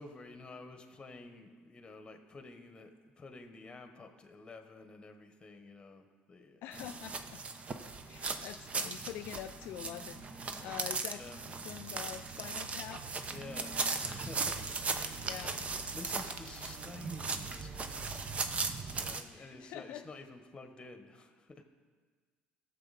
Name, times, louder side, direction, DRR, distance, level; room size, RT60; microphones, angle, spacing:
voice 1, 0.0-2.9 3.2-6.6 11.1-11.4 13.3-15.6 15.9-18.5 18.9-21.6, left 3 dB, 20° left, 6 dB, 1.3 m, -50 dB
voice 2, 6.6-7.4 8.1-13.0 15.2-15.6 19.3-20.0, left 11 dB, 65° left, 8 dB, 0.3 m, -45 dB
sound 1, 6.7-19.2, right 4 dB, 30° right, 0.8 m, -38 dB
16.0 x 7.3 x 4.2 m, 1.5 s
supercardioid pair, 100°, 4 cm